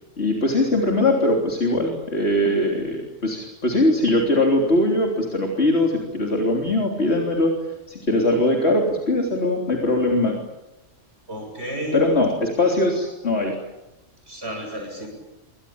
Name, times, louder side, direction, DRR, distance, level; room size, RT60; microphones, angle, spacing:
voice 1, 0.2-7.6 7.9-10.4 11.9-13.6, left 1 dB, 55° left, 2 dB, 3.8 m, -21 dB
voice 2, 11.3-12.0 13.5-13.6 14.3-15.1, equal, 55° right, 1 dB, 7.6 m, -31 dB
27.5 x 24.5 x 8.8 m, 0.95 s
omnidirectional pair, 1.3 m